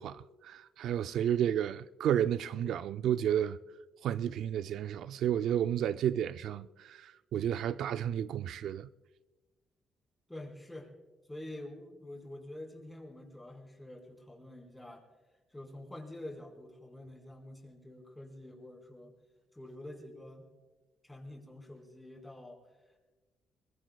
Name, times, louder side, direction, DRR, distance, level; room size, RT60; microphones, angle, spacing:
voice 1, 0.0-3.6 4.0-8.9, right 10 dB, 75° right, 0.4 m, -32 dB
voice 2, 10.3-10.9 11.3-15.0 15.5-19.2 19.5-20.5 21.0-23.0, left 1 dB, 10° left, 4.6 m, -47 dB
23.0 x 21.5 x 2.3 m
cardioid pair, 90°, 0 cm